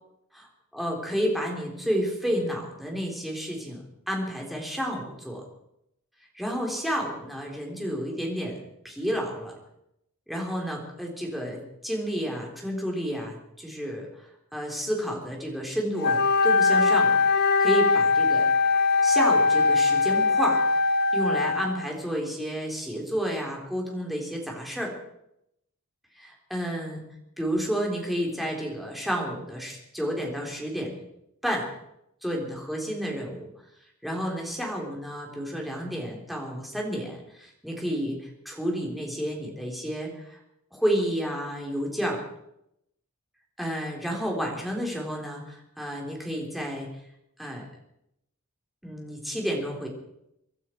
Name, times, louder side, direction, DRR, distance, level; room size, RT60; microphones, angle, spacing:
voice 1, 0.3-5.4 6.3-8.6 8.8-9.5 10.3-14.1 14.5-18.5 19.0-20.6 21.1-24.9 26.2-27.0 27.4-30.9 31.4-31.7 32.2-33.5 34.0-40.4 40.7-42.2 43.6-46.9 47.4-47.7 48.8-49.9, equal, ahead, -1 dB, 3.7 m, -31 dB
Wind instrument woodwind instrument, 16.0-21.9, left 4 dB, 45° left, 0.6 m, -21 dB
24.5 x 12.0 x 4.6 m, 0.80 s
head